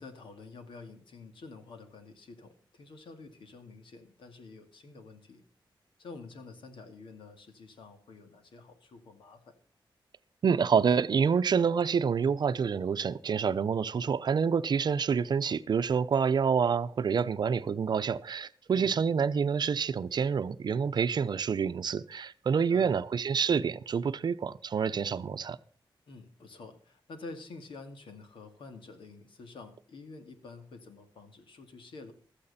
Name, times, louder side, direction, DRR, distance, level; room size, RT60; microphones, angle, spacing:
voice 1, 0.0-5.4 6.0-9.5 18.7-19.3 22.5-22.9 26.1-32.1, left 3 dB, 80° left, 2.3 m, -48 dB
voice 2, 10.4-25.6, right 6 dB, 55° right, 0.7 m, -27 dB
15.5 x 13.0 x 4.2 m
wide cardioid pair, 115°, 9 cm